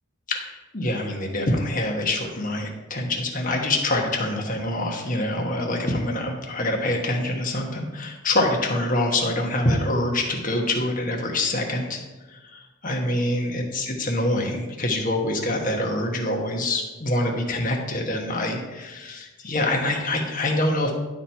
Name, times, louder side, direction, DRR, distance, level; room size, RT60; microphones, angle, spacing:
voice 1, 0.3-12.0 12.3-20.9, left 1 dB, 40° left, 2 dB, 1.3 m, -25 dB
11.0 x 4.4 x 4.6 m, 1.2 s
head